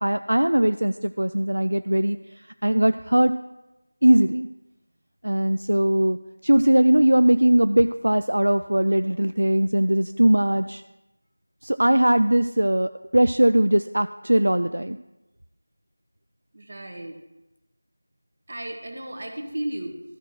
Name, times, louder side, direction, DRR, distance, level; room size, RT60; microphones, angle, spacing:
voice 1, 0.0-2.2 2.6-3.4 4.0-4.5 5.2-6.2 6.4-10.8 11.6-15.0, right 1 dB, 80° right, 11 dB, 0.3 m, -20 dB
voice 2, 16.5-17.2 18.5-20.0, right 1 dB, 50° right, 4 dB, 1.5 m, -34 dB
13.0 x 4.4 x 6.4 m, 1.0 s
figure-of-eight pair, 170°, 0 cm